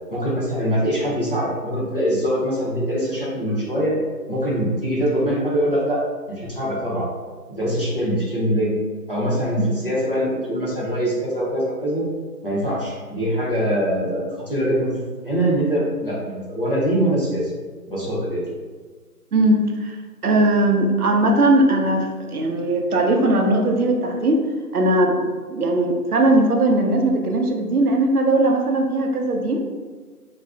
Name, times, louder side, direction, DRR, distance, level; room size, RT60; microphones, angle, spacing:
voice 1, 0.1-4.0 4.3-6.0 6.3-7.1 7.6-8.7 9.1-12.1 12.4-17.5 17.9-18.4, equal, 35° left, -7 dB, 0.6 m, -23 dB
voice 2, 19.3-20.0 20.2-24.4 24.7-29.6, right 1 dB, 70° right, 2 dB, 0.6 m, -19 dB
2.4 x 2.1 x 3.4 m, 1.5 s
figure-of-eight pair, 170°, 47 cm